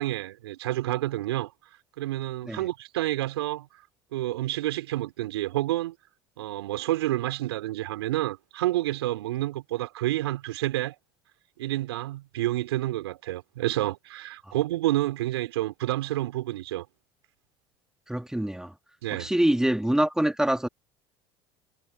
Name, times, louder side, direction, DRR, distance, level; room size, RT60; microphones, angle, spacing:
voice 1, 0.0-1.5 2.0-3.7 4.1-5.9 6.4-11.0 11.6-16.9 19.0-19.3, right 15 dB, 80° right, 3.9 m, -29 dB
voice 2, 18.1-18.7 19.1-20.7, right 1 dB, 5° right, 2.0 m, -25 dB
hypercardioid pair, 70°, 13 cm